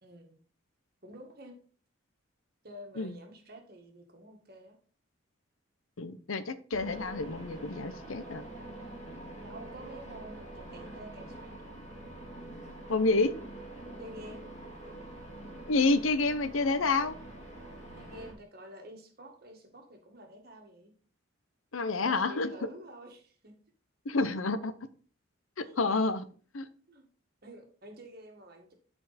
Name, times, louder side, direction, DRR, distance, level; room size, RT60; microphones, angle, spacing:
voice 1, 0.0-0.4 1.0-1.6 2.6-4.8 9.4-11.7 14.0-14.5 18.0-20.9 22.0-23.6 25.6-25.8 26.9-27.1 27.4-28.7, right 1 dB, 50° right, 3 dB, 1.8 m, -49 dB
voice 2, 6.0-8.4 12.9-13.4 15.7-17.2 21.7-22.5 24.1-24.7 25.6-26.3 26.5-26.6, left 3 dB, 80° left, 12 dB, 0.8 m, -29 dB
sound 1, 6.7-18.3, right 1 dB, 35° left, 2.9 m, -45 dB
12.0 x 4.5 x 4.2 m, 0.41 s
head